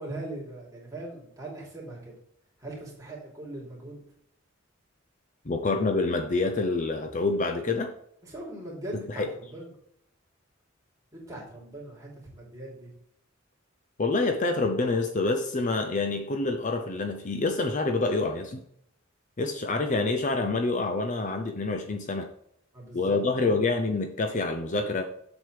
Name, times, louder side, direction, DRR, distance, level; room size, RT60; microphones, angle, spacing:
voice 1, 0.0-2.2 2.6-4.0 8.2-9.7 11.1-12.9 22.7-23.5, right 1 dB, 15° right, -4 dB, 3.1 m, -40 dB
voice 2, 5.5-7.9 9.1-9.3 14.0-18.6 19.4-22.3 22.9-25.0, left 3 dB, 35° left, 6 dB, 0.6 m, -27 dB
7.7 x 7.2 x 3.3 m, 0.71 s
head